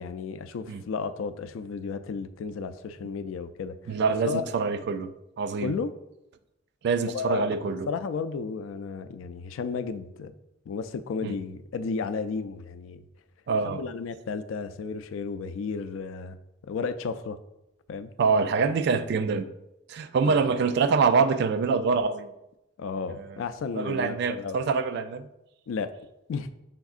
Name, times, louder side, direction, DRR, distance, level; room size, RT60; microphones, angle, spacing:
voice 1, 0.0-4.0 4.3-4.5 5.6-5.9 7.1-10.3 10.7-13.0 13.6-16.4 16.6-17.4 17.9-18.1 20.2-20.3 22.8-24.6 25.7-25.9 26.3-26.5, left 5 dB, 85° left, 11 dB, 0.3 m, -33 dB
voice 2, 3.9-5.1 5.4-5.8 6.8-7.9 11.2-11.3 13.5-13.8 18.2-19.5 19.9-22.3 23.1-23.4 23.8-25.3, right 5 dB, 60° right, 10 dB, 0.3 m, -25 dB
5.8 x 3.5 x 2.4 m, 0.89 s
head